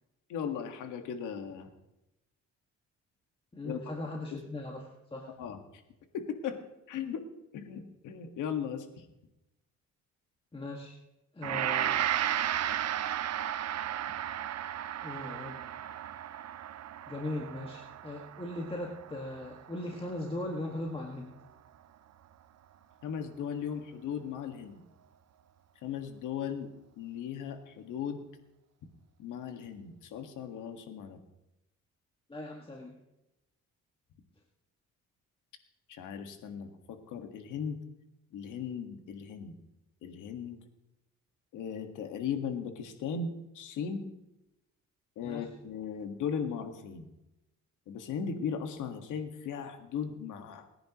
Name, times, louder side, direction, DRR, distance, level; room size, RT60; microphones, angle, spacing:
voice 1, 0.3-1.7 3.6-3.8 4.3-4.4 5.4-5.6 6.1-6.6 6.9-7.2 7.5-8.9 23.0-24.8 25.8-26.7 27.0-28.2 29.2-31.2 35.9-37.8 38.3-39.6 40.0-40.6 41.5-44.1 45.2-47.1 47.9-50.7, left 7 dB, 85° left, 6 dB, 1.8 m, -37 dB
voice 2, 3.5-5.3 10.5-11.0 11.3-12.0 15.0-15.6 17.1-21.4 32.3-33.0 45.2-45.5, left 1 dB, 20° left, -1 dB, 1.9 m, -39 dB
Gong, 11.4-20.6, right 11 dB, 60° right, 0.7 m, -34 dB
29.5 x 10.0 x 3.1 m, 0.92 s
cardioid pair, 90°, 30 cm